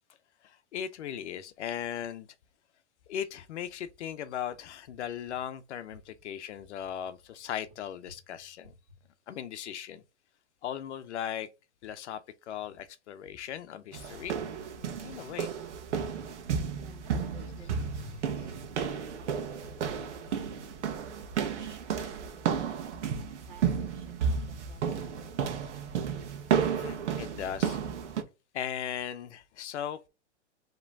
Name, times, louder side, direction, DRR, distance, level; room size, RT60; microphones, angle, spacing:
voice 1, 0.4-2.3 3.1-8.7 9.3-10.0 10.6-11.5 11.8-12.2 12.5-14.4 14.8-15.5 17.6-17.7 18.0-18.1 26.7-27.8 28.5-30.1, left 9 dB, 75° left, 0.7 m, -38 dB
sound 1, 13.9-28.2, right 7 dB, 80° right, 1.1 m, -32 dB
voice 2, 16.7-20.8 21.3-23.0 23.5-25.9, right 3 dB, 35° right, 1.9 m, -56 dB
5.0 x 3.0 x 3.4 m
hypercardioid pair, 150°, 35 cm